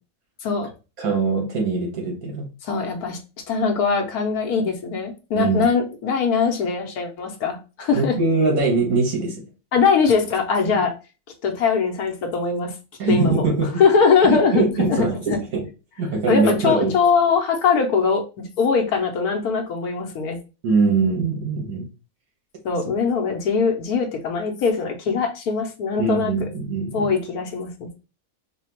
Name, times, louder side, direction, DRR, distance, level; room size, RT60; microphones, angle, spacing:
voice 1, 1.0-2.5 5.4-5.6 7.9-9.4 10.6-10.8 13.0-13.7 14.3-15.6 16.0-16.9 20.6-21.9 26.0-27.1, right 3 dB, 70° right, 1.8 m, -22 dB
voice 2, 2.6-3.2 3.5-8.2 9.7-10.9 11.4-12.7 13.1-13.4 13.8-15.4 16.3-20.4 22.6-26.5 26.9-27.9, left 5 dB, 75° left, 1.3 m, -21 dB
4.1 x 2.3 x 4.3 m
omnidirectional pair, 1.6 m